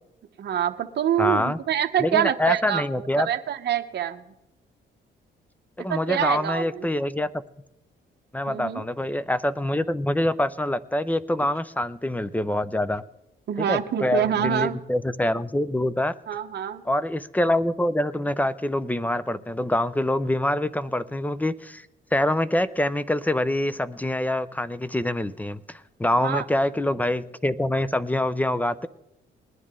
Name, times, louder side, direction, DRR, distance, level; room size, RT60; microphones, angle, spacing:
voice 1, 0.4-4.2 5.9-6.9 8.5-8.8 13.5-14.8 16.3-16.8 26.2-26.4, right 10 dB, 55° right, 5 dB, 0.9 m, -26 dB
voice 2, 1.2-1.6 2.0-3.3 5.8-7.3 8.3-13.0 13.6-16.1 16.9-21.8 22.1-28.9, left 1 dB, 10° left, 15 dB, 0.6 m, -25 dB
20.5 x 10.0 x 3.7 m, 0.91 s
cardioid pair, 90°, 20 cm